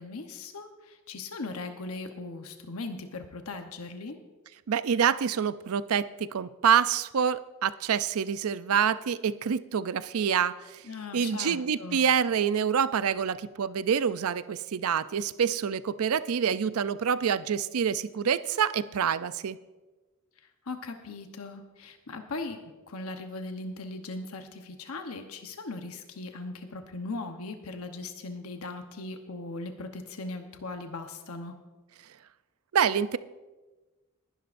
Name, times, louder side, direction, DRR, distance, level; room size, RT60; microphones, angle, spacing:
voice 1, 0.0-4.2 10.8-12.0 20.7-22.6 22.9-31.6, left 3 dB, 85° left, 6 dB, 1.0 m, -39 dB
voice 2, 4.7-10.8 11.1-19.6 32.7-33.2, right 7 dB, 80° right, 15 dB, 0.5 m, -27 dB
20.0 x 11.5 x 2.6 m, 1.2 s
head